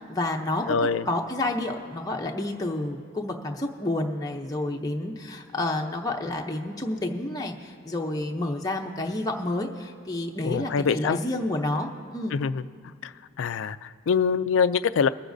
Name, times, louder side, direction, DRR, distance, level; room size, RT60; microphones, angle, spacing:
voice 1, 0.0-0.8 1.1-12.4, left 2 dB, 15° left, 0 dB, 0.6 m, -29 dB
voice 2, 0.7-1.0 10.4-11.2 12.3-12.6 13.4-15.1, left 6 dB, 65° left, 14 dB, 0.4 m, -24 dB
22.5 x 9.9 x 2.6 m, 2.4 s
head